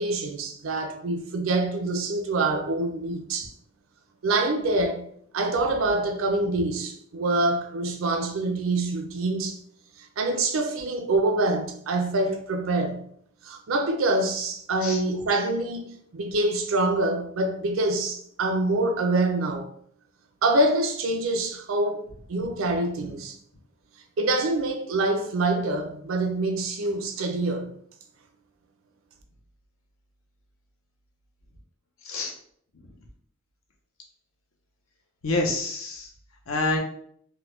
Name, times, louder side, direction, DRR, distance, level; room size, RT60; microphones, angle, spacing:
voice 1, 0.0-3.5 4.2-5.0 5.3-9.6 10.2-13.0 13.4-19.7 20.4-23.4 24.2-27.7, right 2 dB, 75° right, 0.5 m, -25 dB
voice 2, 35.2-36.1 36.5-36.8, left 2 dB, 80° left, 0.7 m, -27 dB
3.5 x 2.1 x 3.0 m
head